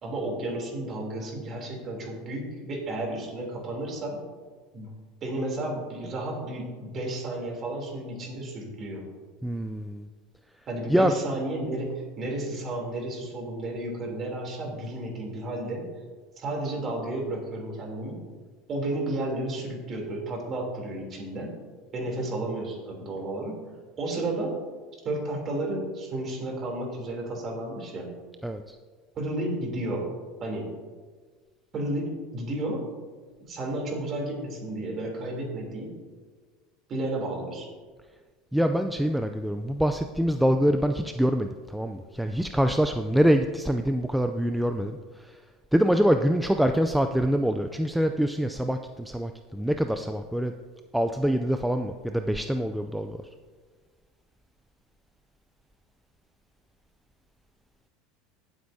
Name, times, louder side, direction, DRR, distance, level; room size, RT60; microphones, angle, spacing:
voice 1, 0.0-4.2 4.7-4.9 5.2-9.1 10.7-15.8 16.4-18.2 18.7-21.5 21.9-23.6 24.0-24.5 25.0-28.1 29.1-30.0 30.4-30.7 31.7-32.8 33.5-35.9 36.9-37.7, right 1 dB, 35° right, 0 dB, 3.0 m, -32 dB
voice 2, 9.4-10.1 10.9-11.1 28.4-28.8 38.5-45.4 45.7-50.5 50.9-53.2, equal, ahead, 6 dB, 0.4 m, -25 dB
17.0 x 8.0 x 2.7 m, 1.5 s
supercardioid pair, 135°, 0 cm